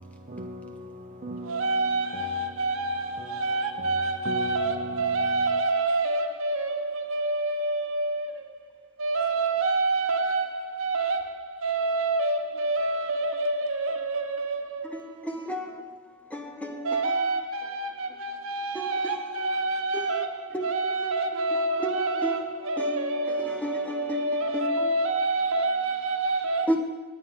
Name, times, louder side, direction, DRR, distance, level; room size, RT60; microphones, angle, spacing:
voice 1, 0.0-2.6 3.2-3.4 3.8-5.6, right 1 dB, 35° right, 0.8 m, -39 dB
voice 2, 1.4-15.0 16.8-26.8, right 2 dB, 65° right, 1.0 m, -27 dB
voice 3, 14.8-17.4 18.0-18.1 18.7-19.6 19.9-20.2 20.5-25.1 26.7-26.8, equal, 5° left, 0.7 m, -35 dB
18.0 x 9.2 x 3.6 m
head